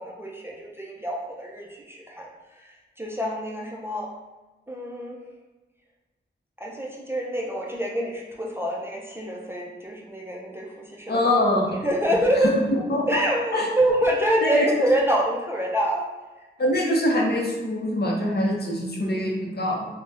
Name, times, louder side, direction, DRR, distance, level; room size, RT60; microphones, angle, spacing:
voice 1, 0.0-2.3 2.6-4.1 4.7-5.2 6.6-11.4 11.7-12.6 13.1-16.0, equal, 10° right, -2 dB, 0.4 m, -26 dB
voice 2, 11.1-11.8 12.7-13.2 13.5-13.7 14.4-14.8 16.6-19.9, left 1 dB, 55° left, -1 dB, 0.6 m, -24 dB
2.7 x 2.1 x 3.4 m, 1.2 s
wide cardioid pair, 100°, 20 cm